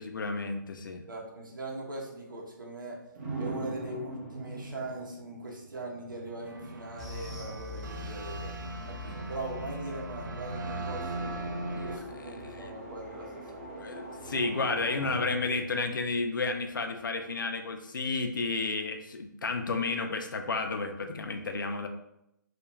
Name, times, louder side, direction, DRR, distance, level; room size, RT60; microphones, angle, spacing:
voice 1, 0.0-1.0 11.8-11.9 12.5-12.7 13.7-21.9, left 3 dB, 80° left, 6 dB, 0.4 m, -32 dB
voice 2, 1.1-3.0 3.4-8.5 8.9-11.3 11.7-13.8, right 2 dB, 90° right, -2 dB, 0.8 m, -40 dB
sound 1, 3.1-17.0, right 2 dB, 35° right, 0.7 m, -43 dB
sound 2, 6.4-12.0, right 2 dB, 70° right, 0.4 m, -39 dB
sound 3, 7.0-15.7 15.9-16.2 16.5-16.6, left 5 dB, 5° left, 0.4 m, -47 dB
2.4 x 2.2 x 3.0 m, 0.82 s
hypercardioid pair, 155°, 11 cm